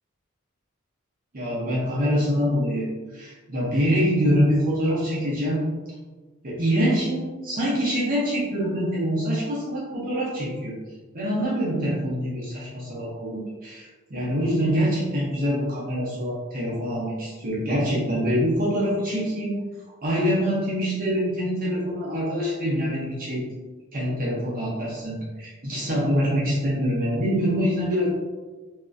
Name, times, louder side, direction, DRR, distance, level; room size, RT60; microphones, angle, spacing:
voice 1, 1.3-5.6 6.4-10.8 11.1-19.5 20.0-23.5 23.9-28.1, equal, 40° right, -6 dB, 0.6 m, -25 dB
2.8 x 2.4 x 2.4 m, 1.3 s
head